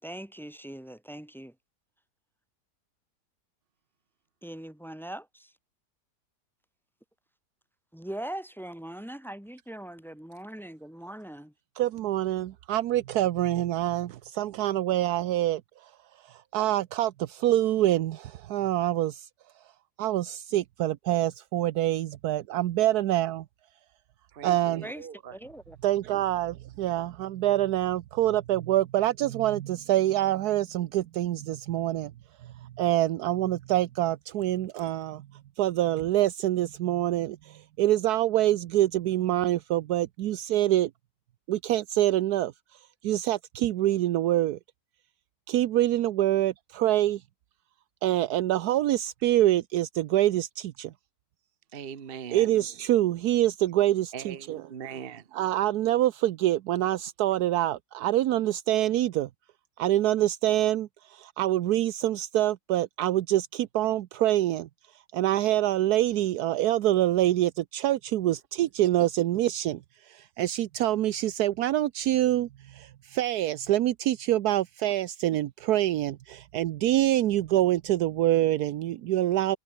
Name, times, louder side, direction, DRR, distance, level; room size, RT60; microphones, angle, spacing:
voice 1, 0.0-1.5 4.4-5.5 7.9-11.5 24.8-25.1 25.3-25.8, right 1 dB, ahead, 1.3 m, -41 dB
voice 2, 11.8-15.6 16.3-19.3 20.0-23.4 24.4-24.8 25.8-32.1 32.6-35.3 35.6-40.9 41.5-42.5 43.0-44.6 45.5-47.2 48.0-50.9 52.3-54.6 55.3-59.3 59.8-64.7 65.1-79.6, right 13 dB, 75° right, 1.2 m, -26 dB
voice 3, 24.3-25.4 51.7-52.5 54.1-55.3 68.2-68.4, right 7 dB, 40° right, 1.2 m, -41 dB
omnidirectional pair, 1.7 m